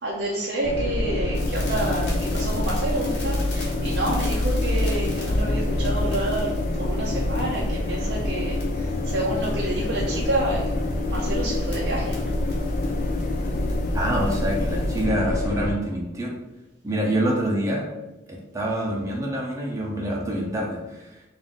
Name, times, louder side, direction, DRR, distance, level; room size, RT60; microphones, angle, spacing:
voice 1, 0.0-10.7 11.1-12.2, right 2 dB, 85° right, -4 dB, 0.7 m, -29 dB
sound 1, 0.6-15.7, left 1 dB, 50° left, 0.4 m, -26 dB
sound 2, 1.3-15.0, left 2 dB, 75° left, 1.5 m, -44 dB
voice 2, 13.9-16.4 16.8-17.9 18.3-21.2, right 1 dB, 20° right, -2 dB, 0.6 m, -26 dB
3.5 x 2.6 x 3.8 m, 0.98 s
head